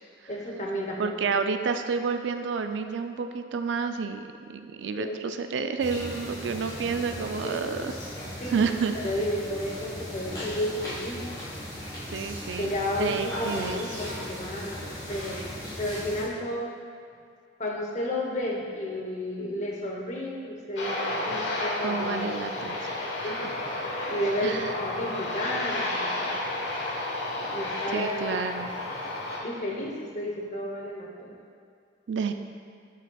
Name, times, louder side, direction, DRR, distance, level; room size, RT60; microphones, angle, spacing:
voice 1, 0.3-1.2 5.0-5.2 7.4-7.7 8.4-8.5 9.0-11.2 12.6-16.7 17.6-22.3 23.2-23.4 24.1-26.3 27.5-28.1 29.4-31.4, left 1 dB, 40° left, -1 dB, 0.9 m, -32 dB
voice 2, 1.0-7.9 8.4-8.9 12.1-12.7 13.0-13.9 21.8-22.8 24.4-24.7 27.9-28.7 32.1-32.3, right 5 dB, 80° right, 7 dB, 0.4 m, -29 dB
sound 1, 5.8-16.3, equal, 25° left, 1.5 m, -37 dB
Aircraft, 20.8-29.4, left 2 dB, 85° left, 1.2 m, -32 dB
7.7 x 7.4 x 2.3 m, 2.3 s
head